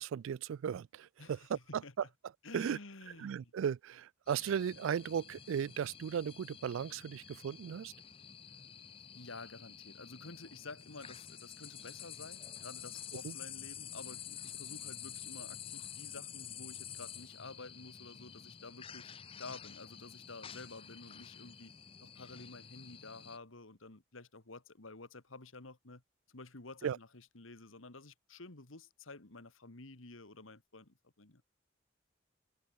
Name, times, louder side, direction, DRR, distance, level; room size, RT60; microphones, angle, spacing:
voice 1, 0.0-2.0 2.5-2.8 3.2-7.9 13.2-13.3 26.8-27.0, right 8 dB, 85° right, 0.3 m, -36 dB
voice 2, 1.2-1.9 2.4-3.5 9.1-21.7 22.0-26.0 26.3-31.4, left 3 dB, 90° left, 2.2 m, -51 dB
sound 1, 4.3-23.4, left 9 dB, 25° left, 0.6 m, -49 dB
head